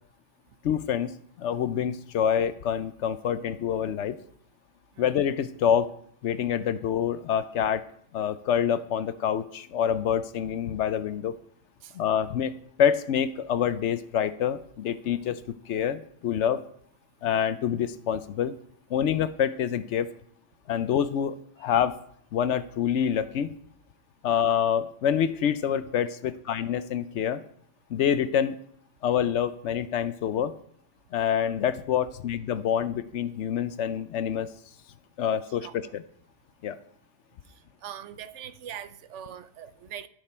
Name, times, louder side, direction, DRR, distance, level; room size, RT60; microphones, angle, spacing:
voice 1, 0.6-1.1 1.4-4.2 5.0-5.9 6.2-7.9 8.1-11.3 11.9-12.5 12.8-15.4 15.7-16.6 17.2-18.5 18.9-20.1 20.7-22.0 22.3-23.5 24.2-27.4 27.9-28.6 29.0-30.5 31.1-34.5 35.2-36.0 36.6-36.8, left 9 dB, 70° left, 0.9 m, -26 dB
voice 2, 35.5-35.9 37.8-40.1, right 9 dB, 75° right, 1.0 m, -42 dB
13.0 x 6.7 x 4.3 m
omnidirectional pair, 1.3 m